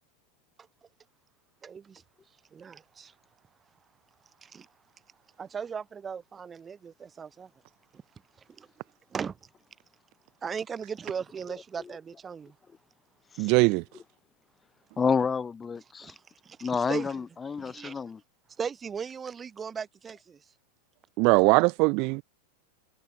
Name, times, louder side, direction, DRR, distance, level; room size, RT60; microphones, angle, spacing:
voice 1, 1.6-2.0 2.5-3.1 4.4-4.7 5.4-7.5 8.6-8.7 9.1-9.3 10.4-12.5 16.0-16.1 16.6-17.2 17.6-18.0 18.6-20.4, right 6 dB, 20° right, 1.2 m, -37 dB
voice 2, 13.4-13.8 21.2-22.2, right 30 dB, 45° right, 0.4 m, -21 dB
voice 3, 15.0-16.1 16.6-18.2, left 5 dB, 15° left, 0.6 m, -29 dB
figure-of-eight pair, 90°, 0 cm